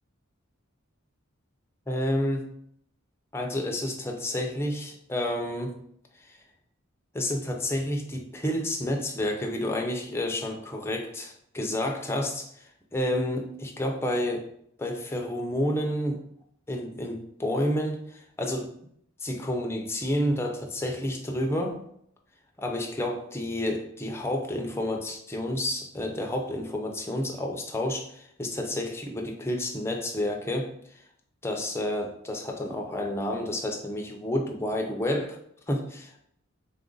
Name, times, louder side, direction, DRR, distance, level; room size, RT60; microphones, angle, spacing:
voice 1, 1.9-2.5 3.3-5.8 6.3-6.4 7.1-12.5 12.9-14.5 14.8-16.2 16.7-18.7 19.2-21.8 22.6-30.7 31.4-35.4 35.7-36.2, left 1 dB, 10° left, 2 dB, 0.5 m, -30 dB
3.7 x 2.5 x 3.8 m, 0.67 s
head